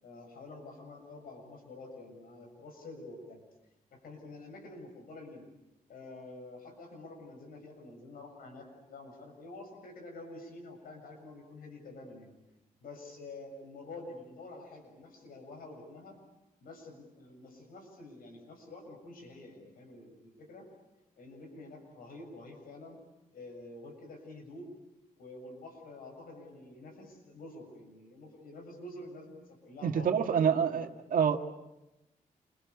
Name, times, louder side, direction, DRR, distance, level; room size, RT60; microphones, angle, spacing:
voice 1, 0.0-3.4 3.9-5.5 5.9-12.3 12.8-16.2 16.6-20.7 21.2-23.0 23.3-24.8 25.2-30.9, left 2 dB, 90° left, 4 dB, 7.2 m, -48 dB
voice 2, 29.8-31.4, right 7 dB, 70° right, 5 dB, 1.9 m, -27 dB
28.5 x 23.0 x 8.4 m, 0.93 s
cardioid pair, 90°, 15 cm